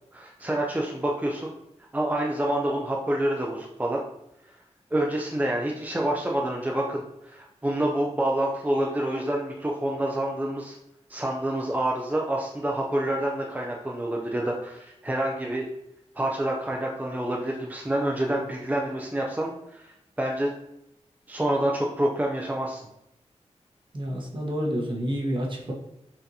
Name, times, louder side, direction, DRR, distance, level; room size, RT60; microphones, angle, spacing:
voice 1, 0.1-1.5 1.9-4.0 4.9-10.8 11.1-15.7 16.2-19.8 20.2-20.5 21.3-22.8, right 1 dB, 15° right, -1 dB, 0.5 m, -27 dB
voice 2, 23.9-25.7, equal, 45° right, -1 dB, 1.1 m, -29 dB
5.7 x 2.6 x 2.7 m, 0.83 s
cardioid pair, 65°, 12 cm